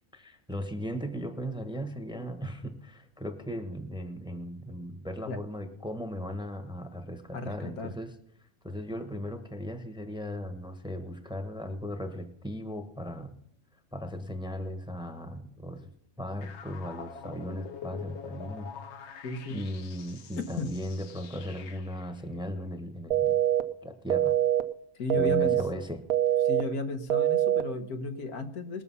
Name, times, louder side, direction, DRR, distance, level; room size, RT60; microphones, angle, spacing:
voice 1, 0.1-8.1 8.6-13.4 13.9-15.9 16.2-18.7 19.5-23.4 23.8-24.4 25.1-26.0, equal, 5° right, 7 dB, 1.0 m, -37 dB
voice 2, 7.3-8.0 19.2-19.6 20.4-20.7 25.0-25.6 26.4-28.8, left 3 dB, 90° left, 7 dB, 1.7 m, -34 dB
sound 1, 16.4-22.1, left 7 dB, 55° left, 1.0 m, -46 dB
sound 2, 23.1-23.6 24.1-24.6 25.1-25.6 26.1-26.6 27.1-27.6, right 12 dB, 85° right, 1.1 m, -24 dB
20.5 x 6.9 x 5.6 m, 0.71 s
omnidirectional pair, 1.5 m